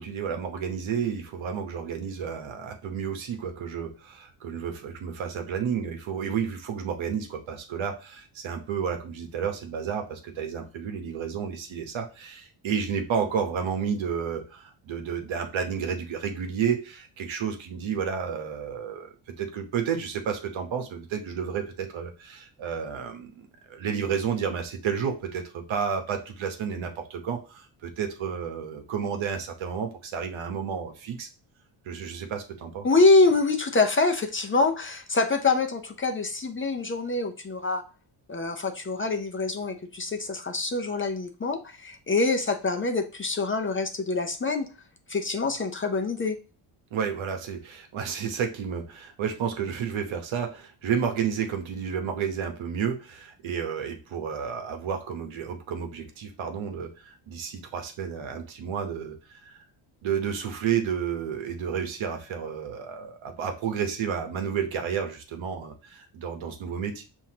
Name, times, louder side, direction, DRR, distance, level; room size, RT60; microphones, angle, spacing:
voice 1, 0.0-31.3 31.8-32.9 46.9-59.6 60.0-67.0, right 7 dB, 65° right, 5 dB, 1.0 m, -31 dB
voice 2, 32.8-37.8 38.3-44.7 45.1-46.4, left 3 dB, 25° left, 5 dB, 0.6 m, -25 dB
5.6 x 2.7 x 2.8 m, 0.33 s
cardioid pair, 75°, 50 cm